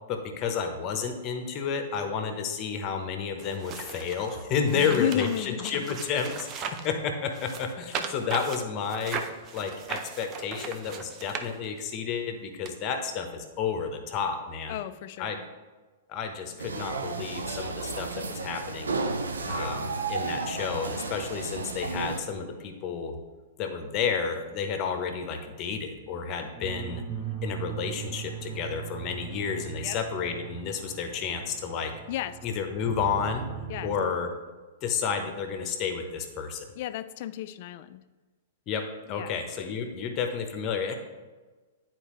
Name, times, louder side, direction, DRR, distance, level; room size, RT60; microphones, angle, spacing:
voice 1, 0.1-9.2 9.5-14.7 15.2-15.4 16.1-19.0 19.5-23.2 23.6-27.0 27.4-31.9 32.4-33.4 33.8-34.3 34.8-36.7 38.7-38.8 39.1-41.0, left 6 dB, 35° left, 5 dB, 1.0 m, -31 dB
sound 1, 3.4-6.9 7.3-12.0 12.7-12.8, right 6 dB, 30° right, 0.6 m, -38 dB
voice 2, 4.7-6.0 14.7-15.5 29.8-30.0 32.1-32.4 33.7-33.9 36.8-38.0 39.1-39.4, left 12 dB, 50° left, 14 dB, 0.3 m, -33 dB
sound 2, 16.6-22.2, right 3 dB, 80° right, 0.6 m, -33 dB
sound 3, 26.5-33.9, right 9 dB, 15° right, 1.2 m, -39 dB
9.8 x 4.4 x 3.1 m, 1.3 s
figure-of-eight pair, 110°, 0 cm